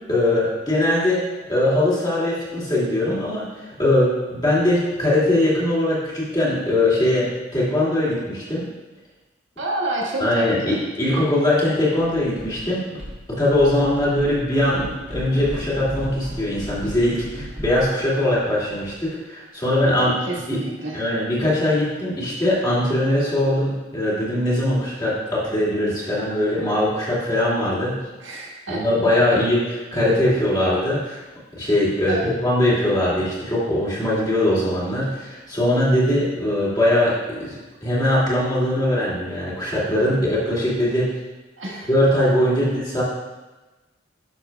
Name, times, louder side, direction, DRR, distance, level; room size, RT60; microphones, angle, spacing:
voice 1, 0.1-1.2 1.5-8.7 10.2-13.0 13.3-20.2 20.5-20.6 20.9-28.0 28.7-31.2 31.6-41.1 41.9-43.0, left 1 dB, 20° left, -7 dB, 2.4 m, -21 dB
voice 2, 9.6-10.8 20.3-21.0 28.2-28.8 32.1-32.4 41.6-41.9, right 1 dB, 85° right, -3 dB, 1.6 m, -29 dB
sound 1, 12.0-12.7 13.0-19.0, equal, 5° right, 1.6 m, -35 dB
11.0 x 6.4 x 2.3 m, 1.2 s
head